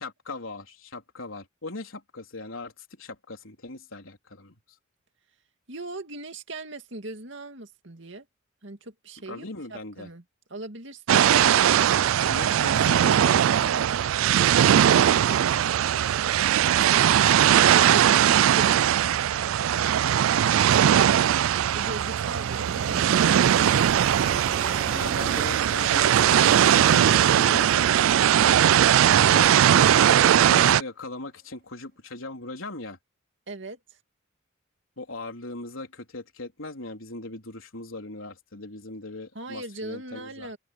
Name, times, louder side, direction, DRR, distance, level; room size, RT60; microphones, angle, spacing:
voice 1, 0.0-2.7 3.0-4.6 9.3-10.1 12.3-13.9 17.4-17.7 24.9-27.9 29.0-29.9 30.3-33.0 35.0-40.5, left 2 dB, 85° left, 3.9 m, -39 dB
voice 2, 5.7-8.3 8.6-10.2 10.5-11.3 14.7-16.2 16.6-17.4 17.7-24.2 33.5-33.8 39.3-40.6, right 2 dB, 60° right, 2.4 m, -40 dB
sound 1, 11.1-30.8, right 10 dB, 90° right, 0.3 m, -20 dB
sound 2, 21.2-29.3, right 4 dB, 45° right, 0.9 m, -38 dB
open air
head